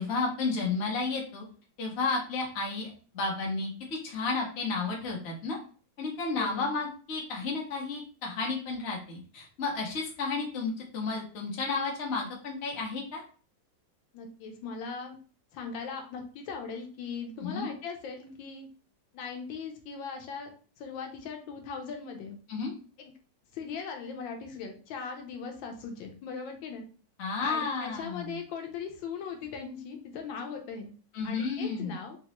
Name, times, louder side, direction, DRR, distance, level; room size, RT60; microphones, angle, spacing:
voice 1, 0.0-1.4 1.8-5.6 6.0-13.2 17.4-17.7 22.5-22.7 27.2-28.4 31.1-31.9, left 4 dB, 50° left, -1 dB, 0.8 m, -32 dB
voice 2, 6.3-6.7 14.1-15.2 15.5-18.7 19.1-20.5 20.8-22.4 23.0-23.1 23.5-26.8 27.4-30.9 31.2-32.2, left 5 dB, 85° left, 3 dB, 1.4 m, -39 dB
3.9 x 2.2 x 2.9 m, 0.40 s
omnidirectional pair, 2.1 m